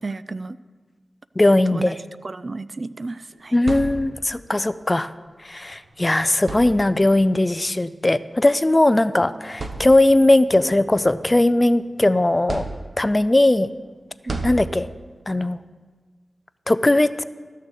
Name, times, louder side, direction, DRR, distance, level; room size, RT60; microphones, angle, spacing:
voice 1, 0.0-0.6 1.7-1.9 2.2-3.6 14.3-14.4, right 3 dB, 50° right, 16 dB, 0.4 m, -32 dB
voice 2, 1.4-1.9 3.5-5.1 5.5-12.7 13.0-13.7 14.4-14.9 15.3-15.6 16.7-17.2, left 1 dB, 25° left, 14 dB, 0.4 m, -18 dB
sound 1, 3.3-4.5 5.7-5.9 6.4-7.2 8.3-8.5 9.0-9.1 9.5-10.4 10.9-11.9 12.5-13.3 14.3-15.2, right 3 dB, 70° right, 1.0 m, -33 dB
13.0 x 6.6 x 7.2 m, 1.4 s
wide cardioid pair, 60°, 0 cm